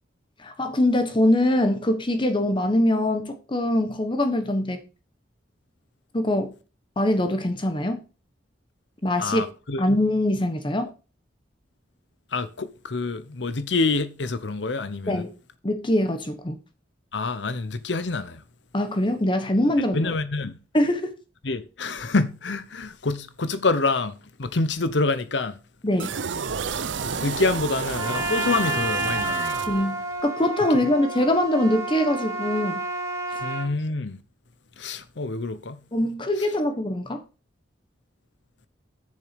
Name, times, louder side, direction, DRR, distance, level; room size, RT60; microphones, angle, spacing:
voice 1, 0.4-4.8 6.1-6.5 7.0-8.0 9.0-9.4 9.8-10.9 15.1-15.3 15.6-16.6 18.7-20.1 20.7-21.1 25.8-26.2 29.7-32.9 33.3-33.4 35.9-37.2, left 1 dB, 25° left, 1.0 m, -23 dB
voice 2, 9.2-9.8 12.3-15.3 17.1-18.4 19.9-20.6 21.4-25.6 27.2-29.5 33.4-34.2 34.8-35.8 36.4-36.5, left 3 dB, 75° left, 0.8 m, -27 dB
sound 1, 26.0-30.2, right 5 dB, 90° right, 0.7 m, -31 dB
Trumpet, 27.9-33.7, right 2 dB, 15° right, 1.6 m, -30 dB
6.9 x 6.7 x 5.1 m
head